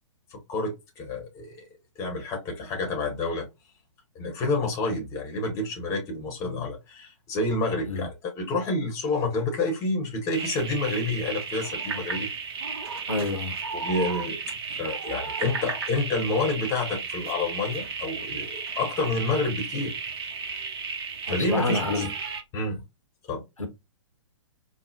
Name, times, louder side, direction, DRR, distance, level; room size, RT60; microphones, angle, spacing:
voice 1, 0.3-1.6 2.0-3.5 4.1-12.3 13.7-14.4 14.7-19.9 21.3-22.0 22.5-22.8 23.3-23.4, left 2 dB, 20° left, 0.9 m, -29 dB
sound 1, 10.3-22.4, right 5 dB, 45° right, 0.7 m, -34 dB
voice 2, 13.1-13.5 21.3-22.1 23.6-23.7, left 2 dB, 80° left, 0.9 m, -28 dB
4.9 x 2.0 x 2.5 m
figure-of-eight pair, 120°, 17 cm